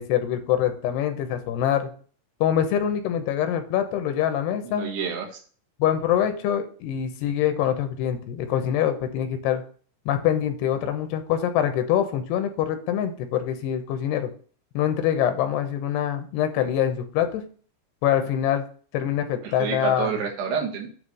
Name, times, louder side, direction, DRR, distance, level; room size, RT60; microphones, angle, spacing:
voice 1, 0.0-1.8 2.4-4.9 5.8-9.6 10.1-14.3 14.7-17.4 18.0-18.6 18.9-20.1, left 10 dB, 85° left, 7 dB, 2.9 m, -24 dB
voice 2, 4.6-5.4 19.4-20.9, right 6 dB, 80° right, 2 dB, 3.6 m, -29 dB
9.3 x 3.2 x 6.7 m, 0.43 s
omnidirectional pair, 4.8 m